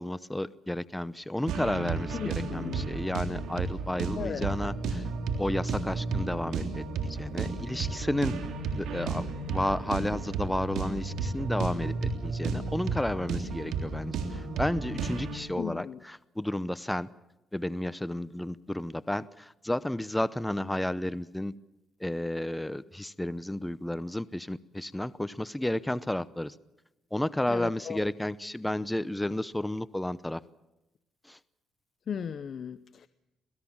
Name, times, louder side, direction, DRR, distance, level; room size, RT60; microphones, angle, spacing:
voice 1, 0.0-5.0 5.4-8.4 8.8-17.1 17.5-21.5 22.0-26.5 27.1-30.4 31.3-31.4, left 1 dB, 5° left, 16 dB, 0.7 m, -32 dB
sound 1, 1.5-15.4, right 4 dB, 80° right, 3.5 m, -33 dB
voice 2, 2.1-2.8 4.2-4.5 15.6-16.0 27.5-28.1 32.1-33.1, left 7 dB, 55° left, 12 dB, 0.7 m, -36 dB
27.0 x 17.5 x 7.2 m, 0.94 s
cardioid pair, 90°, 0 cm